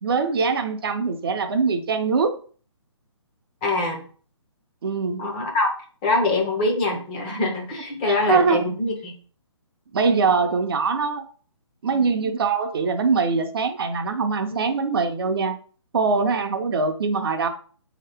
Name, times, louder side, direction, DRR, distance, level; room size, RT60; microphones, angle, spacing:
voice 1, 0.0-2.4 4.8-5.3 8.1-8.6 9.9-11.2 11.8-15.6 15.9-17.5, right 4 dB, 50° right, 6 dB, 0.5 m, -23 dB
voice 2, 3.6-4.0 5.2-5.7 6.0-9.1 11.9-12.1, left 2 dB, 20° left, 1 dB, 0.6 m, -24 dB
4.0 x 2.8 x 3.4 m, 0.42 s
hypercardioid pair, 160°, 16 cm